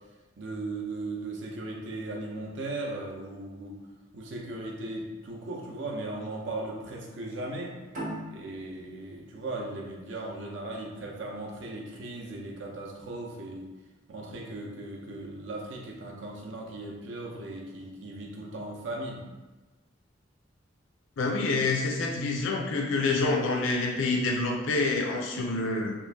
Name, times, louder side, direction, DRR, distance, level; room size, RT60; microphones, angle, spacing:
voice 1, 0.4-3.8 4.1-7.7 8.3-13.7 14.1-19.2, right 2 dB, 70° right, -2 dB, 0.7 m, -37 dB
sound 1, 7.9-11.1, right 1 dB, 45° right, 0.9 m, -41 dB
voice 2, 21.2-25.9, left 3 dB, 85° left, 0 dB, 0.5 m, -27 dB
3.0 x 2.5 x 3.4 m, 1.2 s
head